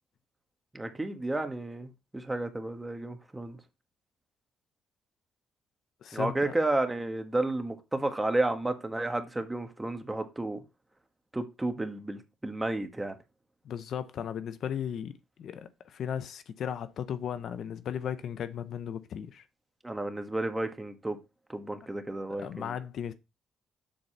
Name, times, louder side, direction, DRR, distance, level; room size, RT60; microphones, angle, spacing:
voice 1, 0.7-3.6 6.1-10.6 11.3-13.2 19.8-21.2 21.5-22.7, right 2 dB, 15° right, 1.5 m, -32 dB
voice 2, 6.0-6.5 13.6-19.4 22.4-23.1, left 8 dB, 65° left, 0.7 m, -36 dB
7.6 x 4.0 x 6.7 m
cardioid pair, 90°, 0 cm